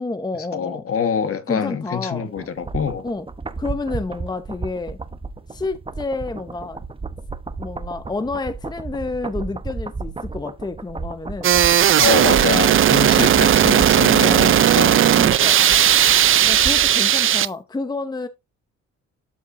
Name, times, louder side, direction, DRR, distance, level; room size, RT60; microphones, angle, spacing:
voice 1, 0.0-0.9 1.5-2.3 3.0-3.3 3.6-5.0 5.5-6.8 7.6-11.5 13.1-13.3 15.1-15.6 16.5-18.3, left 3 dB, 15° left, 0.8 m, -29 dB
voice 2, 0.5-3.0 12.0-15.1, left 7 dB, 50° left, 1.4 m, -25 dB
sound 1, 2.4-17.0 17.3-17.4, right 3 dB, 20° right, 0.9 m, -33 dB
sound 2, 11.4-17.5, right 10 dB, 45° right, 0.5 m, -15 dB
12.5 x 4.5 x 2.6 m
cardioid pair, 90°, 30 cm